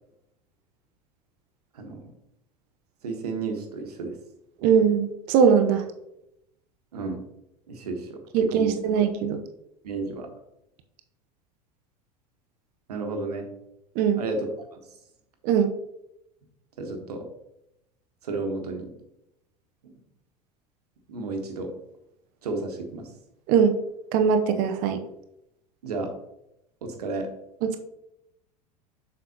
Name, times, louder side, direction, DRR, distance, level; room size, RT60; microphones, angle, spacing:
voice 1, 3.0-4.2 6.9-7.2 7.7-8.7 8.9-9.0 9.8-10.3 12.9-13.5 14.2-14.8 16.8-17.3 18.2-18.9 21.1-21.7 22.4-23.1 25.8-26.1 26.8-27.3, right 3 dB, 70° right, 4 dB, 1.4 m, -32 dB
voice 2, 4.6-5.8 8.3-9.4 14.0-14.2 15.4-15.7 23.5-23.8 24.1-25.0 27.6-27.8, right 7 dB, 45° right, 7 dB, 0.8 m, -21 dB
7.5 x 6.5 x 2.9 m, 0.85 s
figure-of-eight pair, 75°, 21 cm